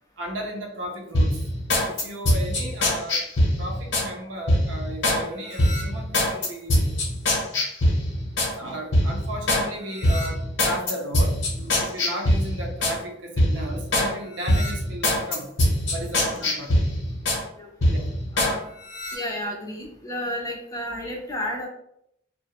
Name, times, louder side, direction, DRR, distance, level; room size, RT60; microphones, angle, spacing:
voice 1, 0.2-1.4 1.9-3.3 3.6-6.9 7.5-7.6 8.6-15.5 15.9-17.0 17.9-18.1, right 1 dB, 80° right, 1 dB, 0.6 m, -35 dB
sound 1, 1.1-4.1 4.5-5.2 5.6-8.5 8.9-9.7 10.0-13.0 13.4-14.1 14.5-17.4 17.8-18.5 18.9-19.2, left 1 dB, 85° left, 0.8 m, -23 dB
voice 2, 18.3-18.7 19.1-21.7, left 1 dB, 20° left, -1 dB, 0.4 m, -32 dB
2.4 x 2.1 x 2.8 m, 0.75 s
head